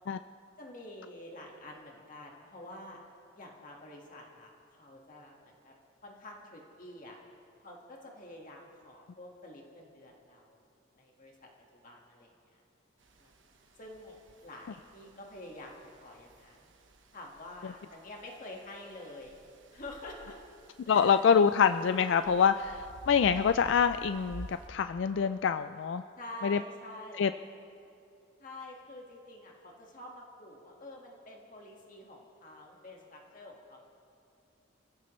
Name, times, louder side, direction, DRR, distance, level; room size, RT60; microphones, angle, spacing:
voice 1, 0.6-3.0 3.3-5.7 6.0-7.2 7.6-10.6 10.9-12.6 13.2-13.3 13.8-16.7 17.1-19.4 19.7-20.4 20.8-21.2 26.2-27.3 28.4-33.9, left 1 dB, 40° left, -1 dB, 1.7 m, -48 dB
sound 1, 13.0-24.7, right 1 dB, 70° right, 1.2 m, -53 dB
voice 2, 20.9-26.0 26.4-26.6 27.2-27.3, left 6 dB, 65° left, 11 dB, 0.3 m, -25 dB
26.0 x 16.0 x 3.2 m, 2.5 s
head